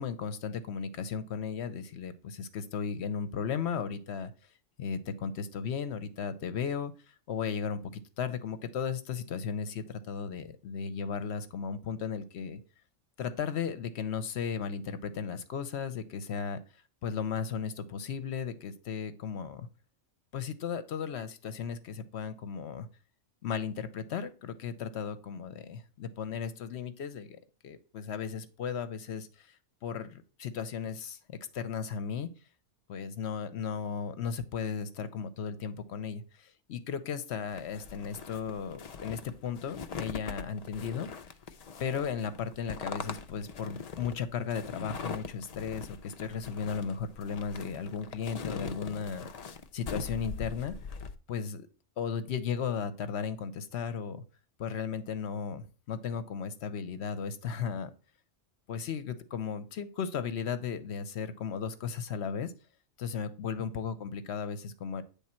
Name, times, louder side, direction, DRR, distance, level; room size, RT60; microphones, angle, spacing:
voice 1, 0.0-4.3 4.8-6.9 7.3-12.6 13.2-16.6 17.0-19.7 20.3-22.9 23.4-29.6 29.8-31.2 31.5-32.3 32.9-41.1 41.8-49.3 49.7-50.7 51.3-51.7 52.0-54.2 54.6-57.9 58.7-62.5 63.0-65.0, left 6 dB, 70° left, 11 dB, 0.9 m, -35 dB
sound 1, 37.5-51.1, left 5 dB, 50° left, 0.5 m, -42 dB
8.5 x 3.5 x 4.3 m, 0.37 s
omnidirectional pair, 1.2 m